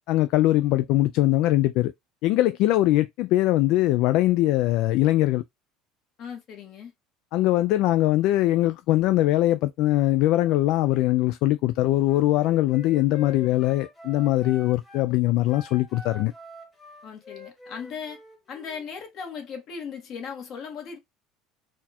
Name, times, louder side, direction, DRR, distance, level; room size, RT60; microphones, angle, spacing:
voice 1, 0.1-1.9 2.2-5.4 7.3-16.3, left 15 dB, 60° left, 0.3 m, -21 dB
voice 2, 6.2-6.9 17.0-18.2 18.5-21.0, left 6 dB, 40° left, 1.6 m, -37 dB
Wind instrument woodwind instrument, 12.0-15.1 15.4-18.9, left 2 dB, 10° left, 1.6 m, -45 dB
4.2 x 2.4 x 4.2 m
cardioid pair, 145°, 0 cm